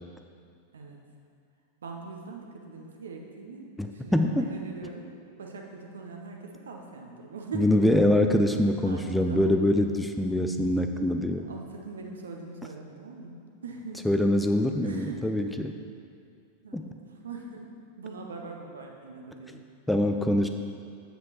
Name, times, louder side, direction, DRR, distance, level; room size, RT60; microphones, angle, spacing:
voice 1, 1.8-5.1 5.4-7.9 8.9-9.6 11.4-14.0 14.8-15.7 16.6-17.7 18.0-19.6, right 3 dB, 65° right, 2 dB, 0.8 m, -41 dB
voice 2, 3.8-4.5 7.5-11.5 14.1-15.8 16.7-16.8 19.9-20.5, left 1 dB, 5° left, 6 dB, 0.3 m, -24 dB
7.6 x 7.1 x 2.9 m, 2.3 s
figure-of-eight pair, 90°, 0 cm